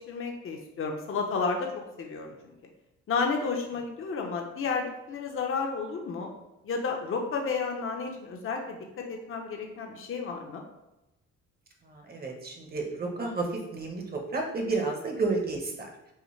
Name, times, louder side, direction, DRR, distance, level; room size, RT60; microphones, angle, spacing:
voice 1, 0.0-1.7 2.0-2.3 3.1-6.3 6.6-10.6, left 4 dB, 45° left, 2 dB, 0.7 m, -32 dB
voice 2, 11.9-16.1, right 3 dB, 30° right, 2 dB, 1.0 m, -31 dB
5.6 x 2.1 x 3.2 m, 0.97 s
cardioid pair, 90°, 30 cm